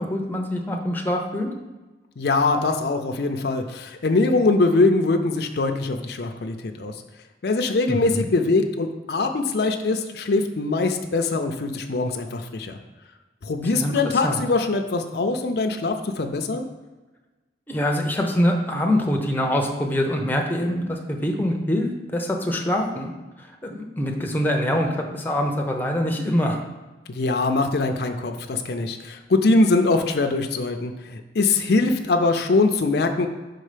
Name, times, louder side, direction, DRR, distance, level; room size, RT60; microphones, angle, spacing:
voice 1, 0.0-1.5 7.9-8.3 13.6-14.4 17.7-23.1 23.4-26.6, left 1 dB, 10° left, 2 dB, 0.7 m, -24 dB
voice 2, 2.2-6.9 7.4-12.8 13.4-16.7 27.1-33.3, left 3 dB, 60° left, 5 dB, 0.5 m, -22 dB
5.4 x 3.9 x 5.0 m, 1.2 s
head